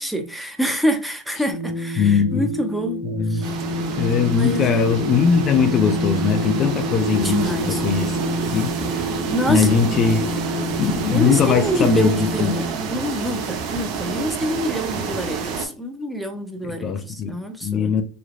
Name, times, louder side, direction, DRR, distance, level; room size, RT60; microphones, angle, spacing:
voice 1, 0.0-3.6 4.3-4.9 7.2-7.8 9.0-10.0 11.1-18.0, equal, ahead, 0.7 m, -26 dB
sound 1, 1.5-12.7, equal, 75° left, 0.7 m, -28 dB
voice 2, 2.0-2.5 3.0-3.4 3.9-8.2 8.5-9.1 9.5-10.3 10.8-12.5 15.0-15.1 16.6-18.0, left 6 dB, 40° left, 0.5 m, -20 dB
sound 2, 3.4-15.7, right 5 dB, 60° right, 0.8 m, -29 dB
3.2 x 3.1 x 2.5 m
supercardioid pair, 115°, 0 cm